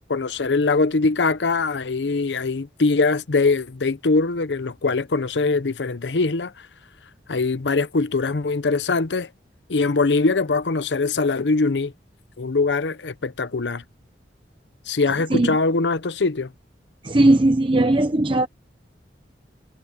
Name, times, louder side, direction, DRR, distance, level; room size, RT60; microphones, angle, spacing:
voice 1, 0.1-6.5 7.3-9.3 9.7-11.9 12.4-13.8 14.9-16.5, left 3 dB, 85° left, 0.8 m, -22 dB
voice 2, 17.0-18.5, right 1 dB, 30° right, 0.8 m, -18 dB
head